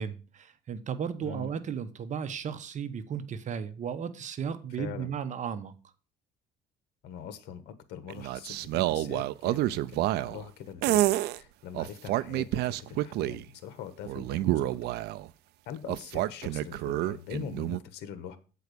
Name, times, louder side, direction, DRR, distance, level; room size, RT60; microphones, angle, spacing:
voice 1, 0.0-5.7, right 7 dB, 45° right, 0.9 m, -35 dB
voice 2, 1.2-1.5 4.8-5.1 7.0-15.0 15.6-18.4, left 8 dB, 80° left, 1.2 m, -42 dB
sound 1, 8.1-10.4 10.8-11.4 11.7-13.4 14.0-15.3 15.9-17.8, right 15 dB, 80° right, 0.5 m, -29 dB
8.3 x 4.6 x 6.7 m
cardioid pair, 110°, 17 cm